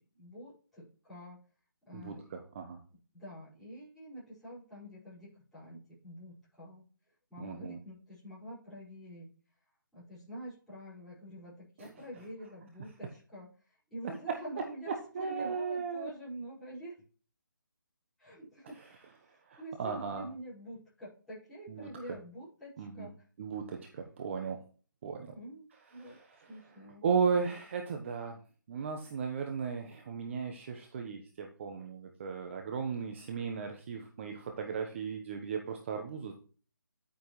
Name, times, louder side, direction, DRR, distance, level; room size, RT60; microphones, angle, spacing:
voice 1, 0.0-1.4 1.9-2.2 3.1-6.8 7.3-9.3 9.9-17.0 18.2-19.1 19.6-23.1 25.3-26.2 26.5-27.4, equal, ahead, -13 dB, 5.5 m, -47 dB
voice 2, 1.9-2.8 7.4-7.8 11.8-11.9 14.3-14.4 14.9-16.1 19.2-20.3 21.7-22.2 22.8-23.1 23.4-24.6 25.0-25.3 25.9-28.4 28.7-36.3, right 6 dB, 35° right, 4 dB, 1.2 m, -36 dB
11.0 x 8.9 x 3.2 m, 0.41 s
figure-of-eight pair, 155°, 11 cm